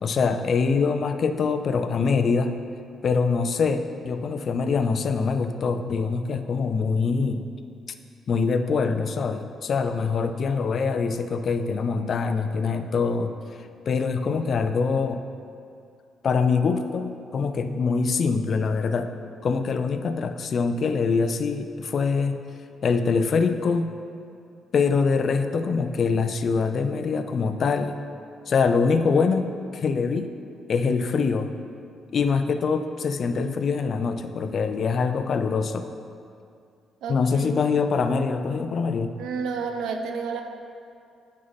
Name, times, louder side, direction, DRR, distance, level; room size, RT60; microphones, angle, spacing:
voice 1, 0.0-2.5 3.0-7.5 8.3-15.2 16.2-19.1 19.4-22.4 22.8-23.9 24.7-28.0 28.5-30.3 30.7-31.5 32.1-35.9 37.1-39.1, left 5 dB, 55° left, 8 dB, 0.5 m, -24 dB
voice 2, 37.0-37.4 39.2-40.4, right 5 dB, 85° right, 4 dB, 0.7 m, -30 dB
9.4 x 5.5 x 4.1 m, 2.4 s
cardioid pair, 90°, 0 cm